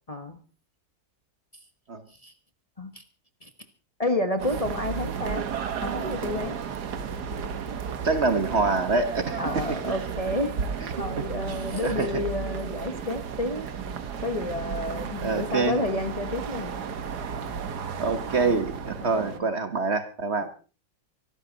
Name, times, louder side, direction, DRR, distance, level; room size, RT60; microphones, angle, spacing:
voice 1, 0.1-0.4 2.2-2.3 2.8-3.0 3.4-3.5 4.0-5.4 5.8-6.6 9.4-10.6 11.0-13.7 14.2-16.7 19.0-19.5 20.4-20.5, left 1 dB, 25° left, 1.3 m, -30 dB
sound 1, 4.4-19.4, right 6 dB, 85° right, 1.8 m, -33 dB
voice 2, 8.0-9.4 11.8-12.2 15.2-15.8 18.0-20.5, right 3 dB, 45° right, 1.6 m, -25 dB
24.0 x 12.5 x 4.1 m
omnidirectional pair, 1.7 m